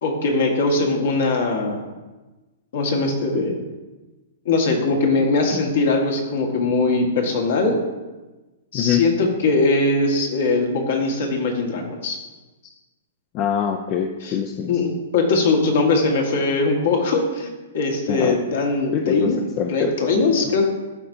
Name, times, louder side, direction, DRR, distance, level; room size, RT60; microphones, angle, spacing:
voice 1, 0.0-1.8 2.7-3.5 4.4-7.8 8.7-12.2 14.2-14.4 14.7-17.5 17.7-20.7, left 3 dB, 65° left, 1 dB, 1.5 m, -21 dB
voice 2, 13.3-14.7 18.1-18.4 18.9-19.3 19.6-19.9, left 8 dB, 40° left, 5 dB, 0.5 m, -24 dB
12.0 x 4.3 x 2.7 m, 1.2 s
hypercardioid pair, 125°, 0 cm